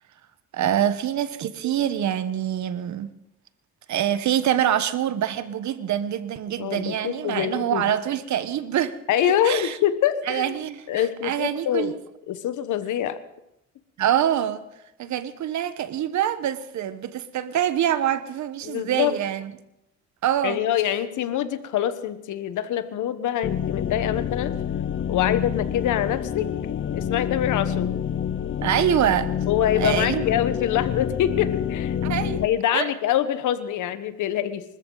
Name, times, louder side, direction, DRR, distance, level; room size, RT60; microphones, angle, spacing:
voice 1, 0.5-3.1 3.9-9.0 9.2-9.8 10.3-12.0 14.0-14.6 15.0-19.5 20.2-20.6 28.6-29.3 29.8-30.3 32.0-32.4 32.7-32.9, right 10 dB, 70° right, 1.2 m, -25 dB
voice 2, 6.6-7.8 9.1-10.6 10.9-11.9 12.3-13.2 18.6-19.2 20.4-24.6 25.1-26.5 26.9-28.0 29.5-32.0 32.3-34.6, left 11 dB, 80° left, 1.2 m, -25 dB
sound 1, 23.4-32.5, left 8 dB, 40° left, 0.6 m, -28 dB
25.0 x 14.0 x 4.0 m
cardioid pair, 90°, 30 cm